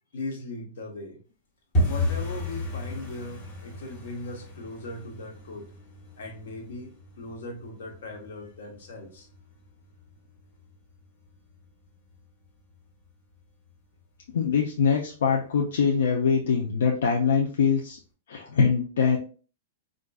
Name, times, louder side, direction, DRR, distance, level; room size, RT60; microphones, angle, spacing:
voice 1, 0.1-1.2 1.9-5.7 6.2-9.3, left 2 dB, 65° left, 2 dB, 1.0 m, -39 dB
sound 1, 1.7-12.5 12.7-13.4 13.7-14.0 14.2-14.6 14.9-15.0 15.5-16.1 16.4-16.5 17.0-17.1, left 1 dB, 20° left, 0.8 m, -34 dB
voice 2, 14.3-18.0 18.3-19.2, left 6 dB, 85° left, 0 dB, 0.5 m, -23 dB
3.6 x 2.5 x 2.3 m, 0.38 s
supercardioid pair, 180°, 0 cm